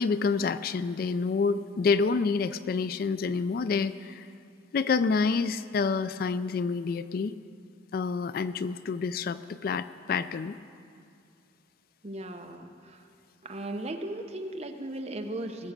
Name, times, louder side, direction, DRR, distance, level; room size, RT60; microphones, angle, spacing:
voice 1, 0.0-4.3 4.7-7.3 7.9-10.6, left 4 dB, 50° left, 14 dB, 0.3 m, -28 dB
voice 2, 12.0-13.1 13.4-15.7, right 1 dB, 35° right, 5 dB, 0.8 m, -37 dB
19.5 x 7.2 x 6.6 m, 2.4 s
head